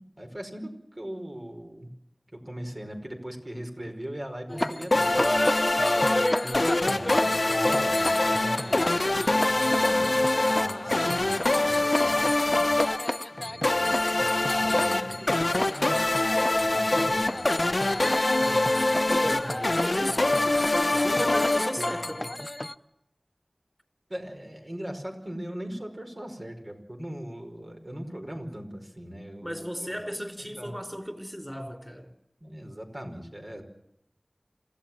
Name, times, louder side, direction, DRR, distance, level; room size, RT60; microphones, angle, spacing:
voice 1, 0.2-1.9 2.3-5.9 6.8-12.8 13.3-14.2 14.6-16.0 16.5-17.4 24.1-29.9 30.4-30.7 32.4-33.6, equal, 50° right, 5.1 m, -40 dB
sound 1, 4.5-22.7, left 1 dB, 35° left, 0.8 m, -32 dB
sound 2, 4.9-22.3, left 2 dB, 65° left, 0.9 m, -25 dB
voice 2, 6.4-6.8 18.4-22.4 29.4-32.1, equal, 5° right, 4.4 m, -35 dB
27.5 x 16.5 x 7.5 m
wide cardioid pair, 45°, 0 cm